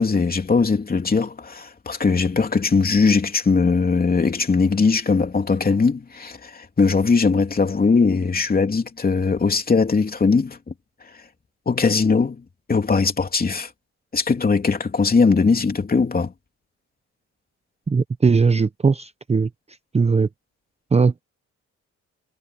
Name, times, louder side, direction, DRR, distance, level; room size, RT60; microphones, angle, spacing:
voice 1, 0.0-10.7 11.7-12.4 12.7-13.7 14.1-16.3, left 4 dB, 30° left, 3.1 m, -20 dB
voice 2, 17.9-19.5 19.9-20.3 20.9-21.2, right 4 dB, 20° right, 0.7 m, -19 dB
cardioid pair, 90°, 30 cm